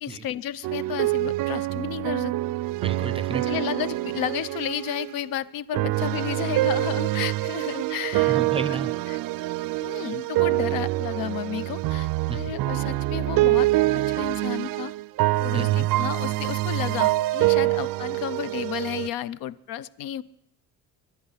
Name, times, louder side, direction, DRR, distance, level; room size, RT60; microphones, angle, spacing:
voice 1, 0.0-2.3 3.4-8.4 9.1-9.2 9.8-14.9 15.4-20.2, left 11 dB, 75° left, 18 dB, 0.6 m, -32 dB
sound 1, 0.6-5.2 5.7-19.1, right 18 dB, 70° right, 0.5 m, -25 dB
voice 2, 2.8-3.6 8.3-8.9 12.3-12.6 15.5-15.9, right 4 dB, 15° right, 14 dB, 0.5 m, -32 dB
23.0 x 10.5 x 5.6 m, 0.76 s
cardioid pair, 180°, 34 cm